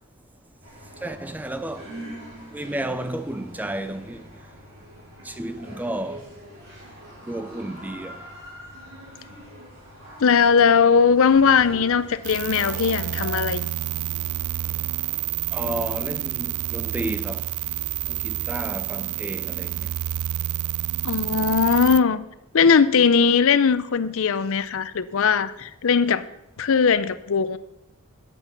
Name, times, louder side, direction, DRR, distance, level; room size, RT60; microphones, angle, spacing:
sound 1, 0.6-13.4, equal, 60° right, 4.7 m, -43 dB
voice 1, 1.0-1.9 2.5-4.3 5.2-6.2 7.3-8.2 15.5-17.5 18.1-19.9, right 1 dB, 5° right, 0.4 m, -32 dB
voice 2, 10.2-13.7 21.0-22.2 22.5-26.2 26.6-27.6, left 6 dB, 65° left, 0.5 m, -19 dB
sound 2, 12.2-22.0, right 14 dB, 80° right, 0.3 m, -29 dB
9.7 x 8.1 x 5.7 m
head